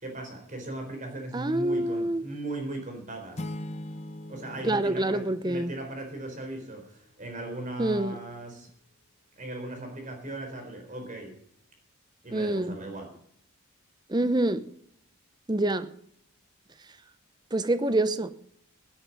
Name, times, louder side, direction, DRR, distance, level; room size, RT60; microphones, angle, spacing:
voice 1, 0.0-3.4 4.3-8.7 9.4-11.3 12.2-13.1, right 2 dB, 35° right, 4.0 m, -38 dB
voice 2, 1.3-2.2 4.6-5.7 7.8-8.2 12.3-12.8 14.1-14.7 15.5-15.9 17.5-18.3, right 1 dB, 20° right, 0.7 m, -26 dB
sound 1, 3.3-6.2, left 1 dB, 30° left, 0.6 m, -40 dB
16.5 x 10.0 x 5.4 m
head